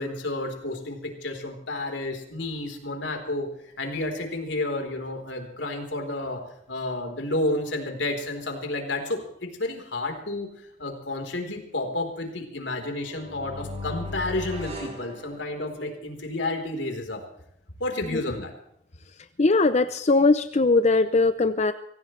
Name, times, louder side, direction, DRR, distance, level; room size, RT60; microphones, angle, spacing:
voice 1, 0.0-6.4 6.7-10.5 10.8-17.2 17.8-18.5, left 2 dB, 85° left, 3 dB, 4.0 m, -31 dB
sound 1, 12.9-16.0, left 1 dB, 35° right, 5.8 m, -37 dB
voice 2, 19.4-21.7, left 3 dB, 40° left, 11 dB, 0.6 m, -20 dB
25.0 x 16.5 x 3.3 m, 0.75 s
head